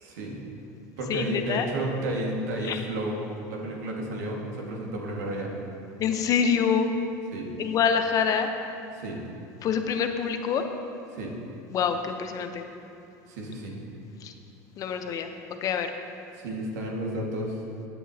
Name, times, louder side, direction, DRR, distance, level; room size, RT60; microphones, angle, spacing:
voice 1, 0.0-0.4 1.0-5.5 7.3-7.5 8.9-9.2 11.1-11.4 13.3-13.8 16.3-17.6, right 1 dB, 85° right, -1 dB, 1.9 m, -32 dB
voice 2, 1.1-1.6 2.7-2.8 6.0-6.9 7.6-8.5 9.6-10.6 11.7-12.6 14.2-14.3 14.8-15.3 15.6-15.9, left 7 dB, 40° left, 6 dB, 0.8 m, -26 dB
15.5 x 8.3 x 2.9 m, 2.7 s
supercardioid pair, 115°, 9 cm